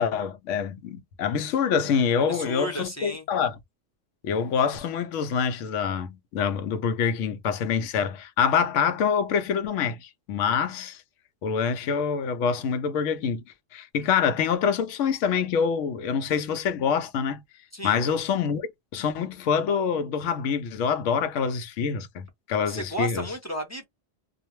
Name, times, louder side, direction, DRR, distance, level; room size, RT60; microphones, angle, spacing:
voice 1, 0.0-3.6 4.2-11.0 11.4-13.4 13.7-17.4 17.8-18.7 18.9-23.3, left 7 dB, 90° left, 0.9 m, -26 dB
voice 2, 2.2-3.3 17.7-18.0 22.7-23.8, right 1 dB, 15° left, 0.6 m, -33 dB
2.4 x 2.0 x 3.0 m
omnidirectional pair, 1.2 m